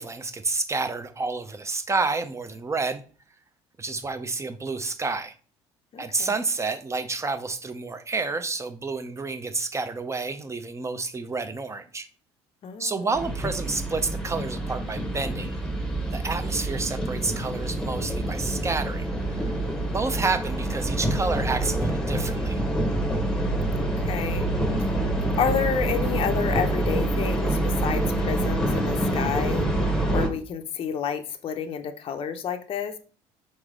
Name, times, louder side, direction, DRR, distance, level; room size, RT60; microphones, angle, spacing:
voice 1, 0.0-3.0 3.8-5.3 6.0-12.1 12.8-15.6 16.1-22.6, right 3 dB, 20° right, 0.6 m, -29 dB
voice 2, 5.9-6.3 12.6-13.2 23.8-24.5 24.8-25.0 25.4-29.7 30.1-32.9, left 7 dB, 40° left, 0.6 m, -30 dB
sound 1, 13.1-30.3, right 1 dB, 5° left, 1.0 m, -26 dB
4.1 x 3.2 x 3.6 m
hypercardioid pair, 70°, 14 cm